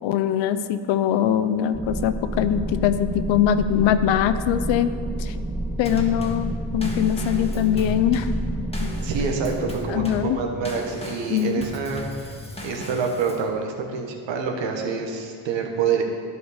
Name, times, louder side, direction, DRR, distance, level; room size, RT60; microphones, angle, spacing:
voice 1, 0.0-4.9 5.2-5.3 5.8-8.3 8.8-8.9 9.9-10.4 11.3-11.6, left 10 dB, 80° left, 12 dB, 0.6 m, -22 dB
sound 1, 1.7-11.0, right 1 dB, 5° right, 0.8 m, -30 dB
Drum kit / Snare drum / Bass drum, 5.9-13.5, right 1 dB, 15° left, 1.7 m, -37 dB
voice 2, 9.0-12.3 12.6-16.0, right 5 dB, 75° right, 2 dB, 1.3 m, -27 dB
12.0 x 4.9 x 5.1 m, 2.2 s
supercardioid pair, 60°, 44 cm